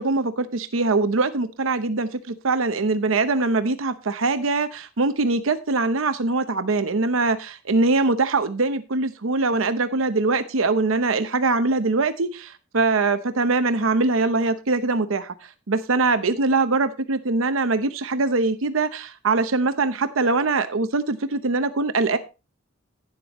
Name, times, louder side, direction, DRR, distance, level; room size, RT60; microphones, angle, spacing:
voice 1, 0.0-22.2, right 3 dB, 80° right, 10 dB, 0.8 m, -22 dB
11.5 x 9.6 x 3.0 m, 0.31 s
head